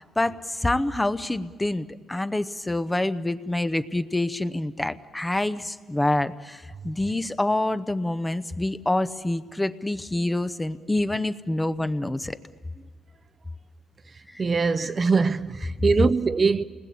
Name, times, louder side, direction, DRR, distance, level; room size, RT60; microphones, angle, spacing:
voice 1, 0.0-12.4 14.3-14.4 14.8-14.9, left 1 dB, 10° left, 0.8 m, -27 dB
voice 2, 14.4-16.6, right 4 dB, 35° right, 0.6 m, -22 dB
27.5 x 20.0 x 8.6 m
cardioid pair, 90°, 0 cm